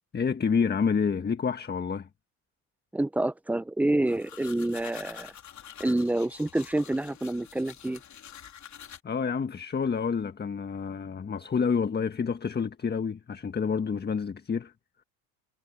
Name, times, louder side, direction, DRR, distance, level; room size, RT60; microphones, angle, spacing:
voice 1, 0.1-2.1 9.0-14.7, left 6 dB, 20° left, 1.5 m, -28 dB
voice 2, 2.9-5.3 5.8-8.0, right 1 dB, 5° right, 0.7 m, -27 dB
sound 1, 4.0-9.0, left 9 dB, 35° left, 3.7 m, -47 dB
hypercardioid pair, 90°, 46 cm